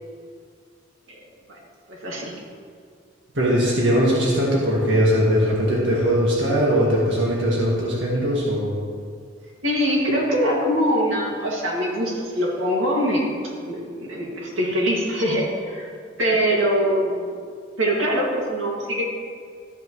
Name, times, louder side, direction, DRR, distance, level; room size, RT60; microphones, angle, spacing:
voice 1, 1.9-2.3 9.6-13.3 13.6-15.9 16.2-17.3 17.8-19.0, equal, 90° right, -3 dB, 2.1 m, -23 dB
voice 2, 3.3-8.7, equal, 70° right, -5 dB, 1.7 m, -20 dB
13.5 x 9.0 x 3.1 m, 2.1 s
head